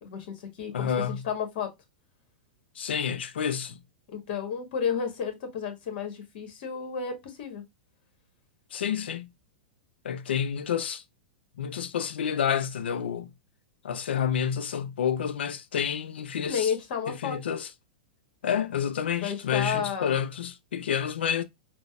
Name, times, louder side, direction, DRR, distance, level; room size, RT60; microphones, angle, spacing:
voice 1, 0.0-1.7 4.1-7.6 16.4-17.4 19.2-20.2, left 7 dB, 60° left, 1.1 m, -32 dB
voice 2, 0.7-1.3 2.8-3.8 8.7-9.3 10.0-11.0 11.6-13.3 13.8-16.7 17.1-17.7 18.4-21.4, left 8 dB, 75° left, 0.5 m, -29 dB
3.9 x 2.1 x 2.3 m
hypercardioid pair, 110°, 6 cm